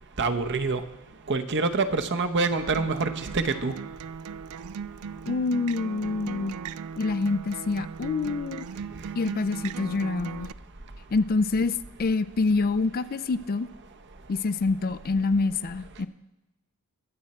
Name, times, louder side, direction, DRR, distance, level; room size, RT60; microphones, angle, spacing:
voice 1, 0.2-0.8 1.3-3.7, right 3 dB, 55° right, 8 dB, 0.9 m, -26 dB
Acoustic guitar, 2.5-10.5, right 6 dB, 80° right, 0.4 m, -38 dB
voice 2, 5.3-6.5 7.0-8.7 9.2-10.5 11.1-13.7 14.3-16.1, left 3 dB, 40° left, 13 dB, 0.4 m, -26 dB
22.5 x 7.7 x 4.3 m, 1.0 s
head